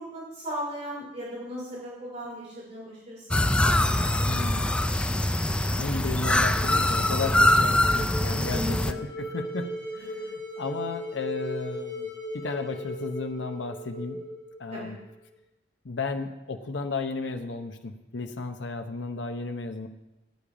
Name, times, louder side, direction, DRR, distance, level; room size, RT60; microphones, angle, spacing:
voice 1, 0.0-5.1 8.1-8.8 14.7-14.9, equal, 35° right, -4 dB, 2.7 m, -38 dB
sound 1, 3.3-8.9, left 1 dB, 5° left, 0.3 m, -23 dB
voice 2, 4.2-4.7 5.7-14.2 14.6-15.0 15.8-19.9, left 3 dB, 70° left, 6 dB, 0.8 m, -34 dB
sound 2, 6.4-15.2, equal, 20° left, 3.0 m, -38 dB
10.5 x 8.6 x 5.0 m, 0.99 s
head